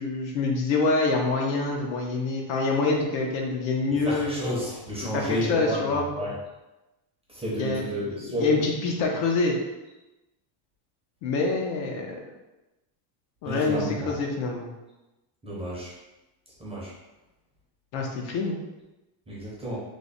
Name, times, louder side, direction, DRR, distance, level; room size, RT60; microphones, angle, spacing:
voice 1, 0.0-4.3 5.1-6.1 7.5-7.8 8.1-9.6 11.2-12.2 13.4-14.7 17.9-18.6, left 3 dB, 70° left, 1 dB, 0.8 m, -26 dB
voice 2, 4.0-5.8 6.1-6.3 7.3-8.6 13.5-14.1 15.4-15.9 16.6-16.9 19.3-19.8, equal, 10° right, -6 dB, 0.6 m, -31 dB
3.2 x 2.1 x 3.9 m, 1.0 s
cardioid pair, 150°, 48 cm